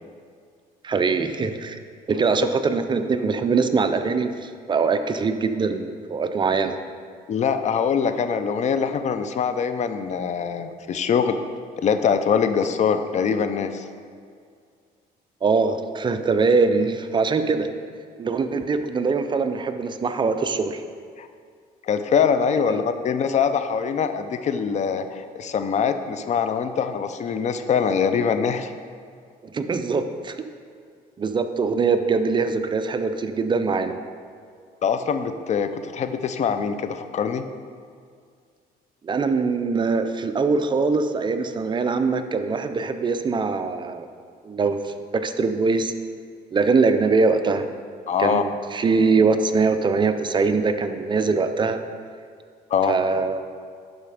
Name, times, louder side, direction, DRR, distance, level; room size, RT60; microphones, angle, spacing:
voice 1, 0.8-1.8 2.1-6.8 15.4-17.7 18.2-20.8 22.7-22.8 29.5-30.4 31.2-34.0 39.0-44.1 44.4-45.9 46.5-47.7 48.2-51.8 52.9-53.4, right 4 dB, 25° right, 8 dB, 0.5 m, -22 dB
voice 2, 7.3-11.4 11.8-13.8 21.2-21.3 21.8-28.7 34.8-37.4 48.1-48.4 52.7-53.0, left 6 dB, 45° left, 9 dB, 0.5 m, -23 dB
11.0 x 4.2 x 5.0 m, 2.2 s
cardioid pair, 110°, 17 cm